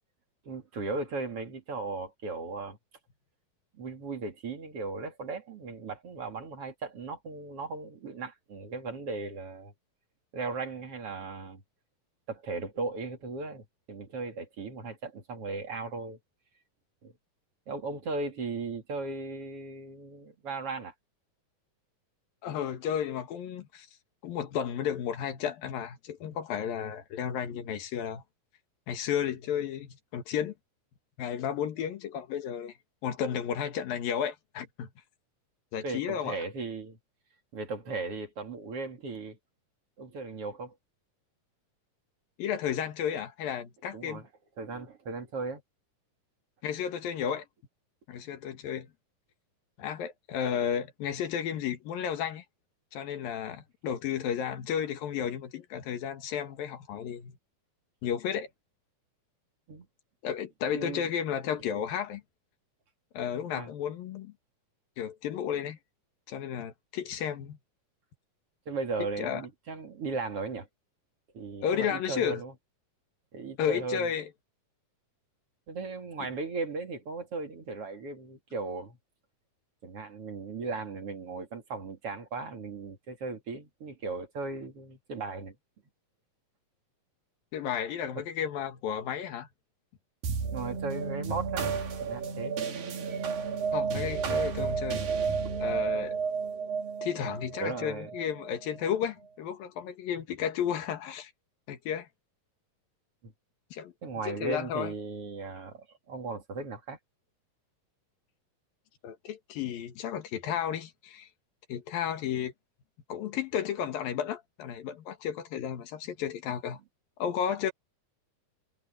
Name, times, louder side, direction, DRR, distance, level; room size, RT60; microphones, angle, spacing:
voice 1, 0.4-2.8 3.7-9.7 10.3-11.6 12.3-16.2 17.0-17.1 17.7-20.9 35.8-37.0 37.5-39.4 40.0-40.7 43.9-44.3 44.6-45.6 59.7-59.9 60.7-61.1 63.5-63.7 68.7-70.7 71.3-72.5 73.3-74.1 75.7-79.0 79.8-85.5 88.2-88.3 90.5-92.6 93.0-93.3 95.4-95.6 97.6-98.1 103.2-103.3 104.0-107.0, right 3 dB, 45° right, 3.2 m, -37 dB
voice 2, 22.4-23.9 24.2-28.2 28.9-30.6 31.2-32.7 33.0-34.9 35.7-36.4 42.4-44.2 46.6-47.5 48.1-48.9 49.8-52.4 52.9-57.4 58.0-58.5 60.2-62.2 63.2-64.3 65.0-65.8 66.3-67.6 69.2-69.4 71.6-72.4 73.6-74.3 76.2-76.3 87.5-89.5 93.7-95.0 95.6-96.2 97.0-101.3 101.7-102.1 103.7-103.9 104.3-104.9 109.0-111.3 111.7-112.5 113.1-116.8 117.2-117.7, left 8 dB, 90° left, 3.5 m, -33 dB
sound 1, 90.2-99.0, right 5 dB, 85° right, 4.5 m, -32 dB
omnidirectional pair, 3.9 m